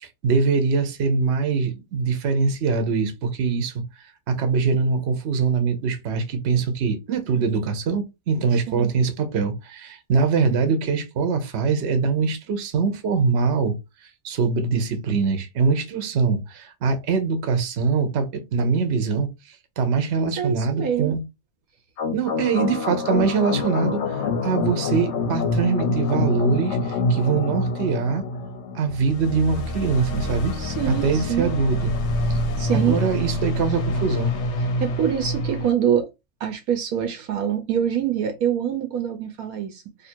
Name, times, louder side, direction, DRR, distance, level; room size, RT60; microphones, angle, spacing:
voice 1, 0.0-3.8 4.3-13.8 14.2-19.3 19.8-21.2 22.1-28.2 28.7-30.5 30.9-31.9 32.7-34.4, right 5 dB, 50° right, 0.9 m, -23 dB
voice 2, 20.2-21.2 30.6-31.5 32.3-33.0 34.8-36.1 36.4-40.1, right 9 dB, 75° right, 1.1 m, -25 dB
sound 1, 22.0-35.7, left 2 dB, 60° left, 0.8 m, -26 dB
2.8 x 2.6 x 4.3 m
omnidirectional pair, 1.6 m